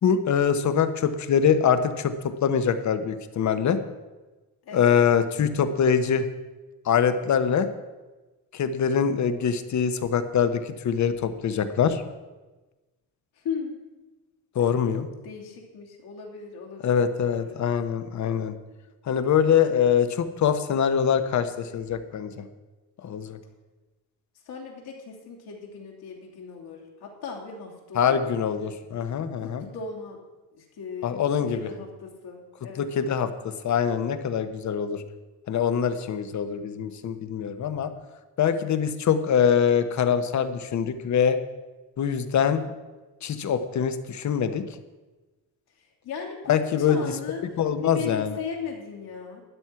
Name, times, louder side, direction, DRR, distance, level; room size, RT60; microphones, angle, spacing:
voice 1, 0.0-3.8 4.7-6.3 6.8-7.7 8.5-12.0 14.5-15.1 16.8-18.5 19.1-22.5 23.0-23.4 27.9-29.7 31.0-31.6 32.8-33.3 33.6-35.0 35.5-37.9 38.4-41.4 42.0-42.7 43.2-44.6 46.5-47.0 47.6-48.4, left 7 dB, 45° left, 10 dB, 1.0 m, -24 dB
voice 2, 4.6-4.9 13.4-13.8 15.2-17.6 24.5-28.8 29.4-30.2 30.5-31.1 31.5-32.9 46.0-46.6 46.9-47.4 47.8-49.4, left 6 dB, 75° left, -1 dB, 3.1 m, -37 dB
12.5 x 9.6 x 5.8 m, 1.2 s
cardioid pair, 145°, 39 cm